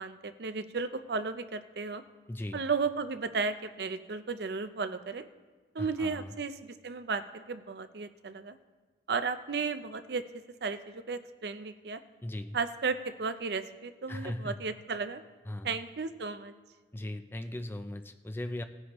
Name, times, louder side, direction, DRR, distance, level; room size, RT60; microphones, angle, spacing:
voice 1, 0.0-2.0 2.5-5.3 5.7-8.6 9.1-10.2 10.6-12.0 12.5-15.2 15.6-16.5, right 4 dB, 65° right, 11 dB, 0.5 m, -34 dB
voice 2, 2.3-2.6 5.8-6.3 12.2-12.6 14.1-14.6 15.5-15.8 16.9-18.6, left 1 dB, 10° left, 8 dB, 0.4 m, -38 dB
17.5 x 9.5 x 3.0 m, 1.4 s
head